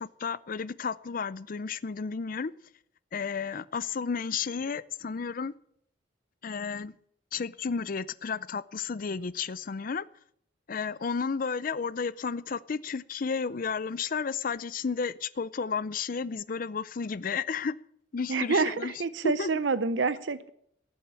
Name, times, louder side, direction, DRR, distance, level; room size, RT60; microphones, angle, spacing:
voice 1, 0.0-2.5 3.1-5.5 6.4-6.9 7.3-10.1 10.7-17.8 18.1-18.9 19.2-19.5, left 5 dB, 50° left, 0.5 m, -32 dB
voice 2, 18.3-20.5, right 4 dB, 75° right, 0.7 m, -27 dB
15.0 x 7.3 x 8.8 m
head